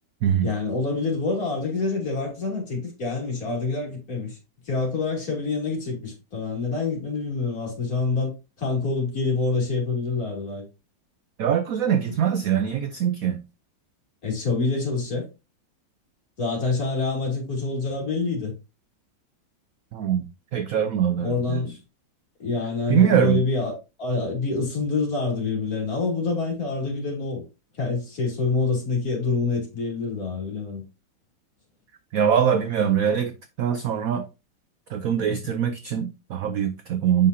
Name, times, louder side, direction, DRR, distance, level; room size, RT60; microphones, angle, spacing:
voice 1, 0.4-4.4 4.7-10.6 14.2-15.3 16.4-18.5 21.2-21.7 22.4-27.4 27.8-30.8, left 3 dB, 50° left, 3.1 m, -26 dB
voice 2, 11.4-13.4 19.9-20.3 20.5-21.6 22.9-23.4 32.1-34.3 34.9-37.3, right 9 dB, 70° right, 0.8 m, -23 dB
7.3 x 5.6 x 2.6 m
omnidirectional pair, 2.1 m